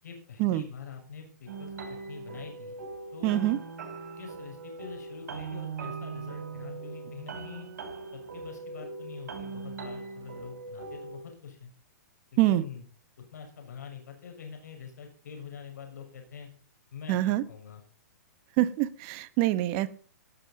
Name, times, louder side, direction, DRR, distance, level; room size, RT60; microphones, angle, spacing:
voice 1, 0.0-2.8 3.1-3.5 4.2-7.7 8.1-11.7 12.3-12.8 13.2-16.5 16.9-17.8, left 6 dB, 75° left, 3 dB, 6.3 m, -45 dB
sound 1, 1.5-11.2, right 4 dB, 75° right, 6.0 m, -40 dB
voice 2, 3.2-3.6 12.4-12.6 17.1-17.4 18.6-19.9, right 15 dB, 40° right, 13 dB, 1.2 m, -25 dB
18.0 x 8.4 x 5.3 m, 0.41 s
hypercardioid pair, 135°, 9 cm